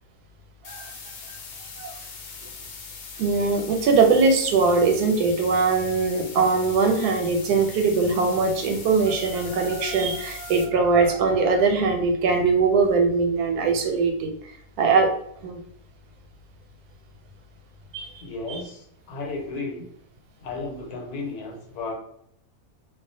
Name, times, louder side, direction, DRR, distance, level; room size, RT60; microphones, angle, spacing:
sound 1, 0.6-10.6, left 5 dB, 70° left, 0.9 m, -41 dB
voice 1, 3.2-14.3 14.8-15.1 15.4-15.6 17.9-18.1 18.5-18.6, right 4 dB, 90° right, 4 dB, 1.1 m, -21 dB
voice 2, 18.2-19.9 20.4-21.9, left 3 dB, 85° left, 2 dB, 1.2 m, -34 dB
2.4 x 2.3 x 2.6 m, 0.68 s
omnidirectional pair, 1.6 m